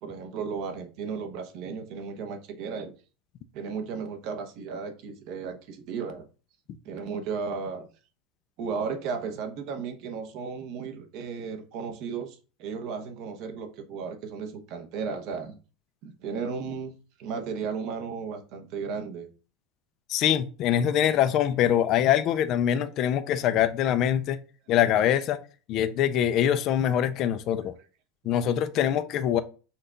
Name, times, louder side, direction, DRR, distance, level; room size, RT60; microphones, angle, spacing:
voice 1, 0.0-2.9 3.5-6.2 6.8-7.9 8.6-15.5 16.0-19.3, right 5 dB, 45° right, 0.8 m, -34 dB
voice 2, 20.1-24.4 24.7-25.4 25.7-27.7 28.2-29.4, left 10 dB, 35° left, 0.3 m, -24 dB
5.6 x 2.3 x 3.8 m
supercardioid pair, 165°, 0 cm